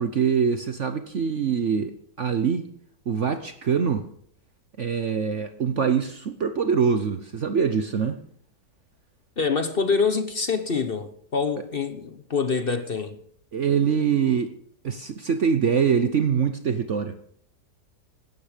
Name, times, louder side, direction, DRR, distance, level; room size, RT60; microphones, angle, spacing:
voice 1, 0.0-2.7 3.1-4.1 4.8-8.2 13.5-14.5 14.8-17.2, right 6 dB, 50° right, 1.0 m, -24 dB
voice 2, 9.4-13.2, left 5 dB, 40° left, 1.0 m, -25 dB
17.5 x 12.5 x 5.1 m
omnidirectional pair, 1.9 m